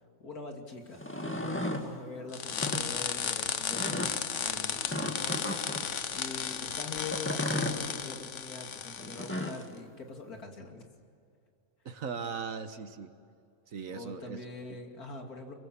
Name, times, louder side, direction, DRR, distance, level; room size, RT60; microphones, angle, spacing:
voice 1, 0.2-5.5 6.1-10.9 13.9-15.5, left 3 dB, 75° left, 2 dB, 3.1 m, -44 dB
sound 1, 0.9-1.9 2.5-2.8 3.7-4.1 4.9-5.9 7.0-7.8 9.0-9.6, left 1 dB, 10° left, 1.9 m, -34 dB
sound 2, 2.3-9.6, left 7 dB, 55° left, 1.2 m, -34 dB
voice 2, 11.8-13.1 13.7-14.4 14.7-14.8, right 6 dB, 60° right, 10 dB, 1.6 m, -38 dB
25.5 x 23.5 x 7.4 m, 2.5 s
omnidirectional pair, 1.6 m